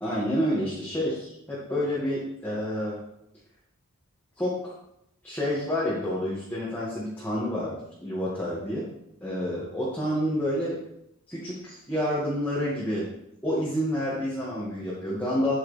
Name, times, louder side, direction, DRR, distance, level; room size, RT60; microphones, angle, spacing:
voice 1, 0.0-3.0 4.4-4.7 5.2-8.8 9.2-10.8 11.3-13.1 13.4-15.6, equal, 10° left, -8 dB, 2.1 m, -29 dB
9.7 x 9.0 x 3.5 m, 0.79 s
head